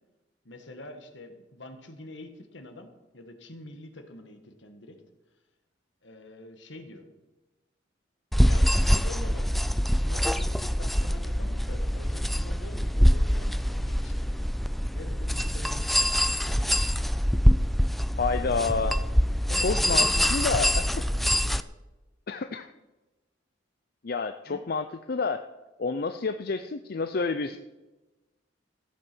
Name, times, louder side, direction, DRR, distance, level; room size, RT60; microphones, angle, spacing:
voice 1, 0.4-5.0 6.0-7.1 8.3-14.4 14.9-16.7 19.5-21.6 24.4-24.6, left 1 dB, 70° left, 6 dB, 1.7 m, -45 dB
sound 1, 8.3-21.6, equal, ahead, 0.3 m, -24 dB
voice 2, 18.2-19.0 19.6-20.8 22.3-22.7 24.0-25.4 25.8-27.6, left 4 dB, 55° left, 8 dB, 0.5 m, -29 dB
14.5 x 8.3 x 6.2 m, 1.1 s
head